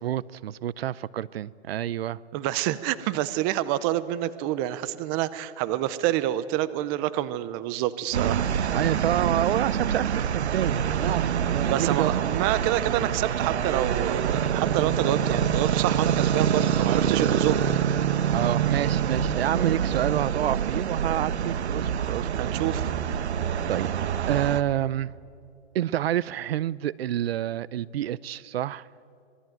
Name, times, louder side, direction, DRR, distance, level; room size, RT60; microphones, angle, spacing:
voice 1, 0.0-2.2 8.7-12.1 18.3-22.5 23.2-23.3 23.7-23.9 24.3-25.1 25.7-28.9, right 12 dB, 65° right, 22 dB, 0.6 m, -28 dB
voice 2, 2.3-8.5 11.7-17.6 22.3-22.9, right 14 dB, 20° right, 16 dB, 0.5 m, -27 dB
sound 1, 8.1-24.6, right 8 dB, 85° right, 1.2 m, -26 dB
25.5 x 20.0 x 9.1 m, 2.5 s
hypercardioid pair, 155°, 32 cm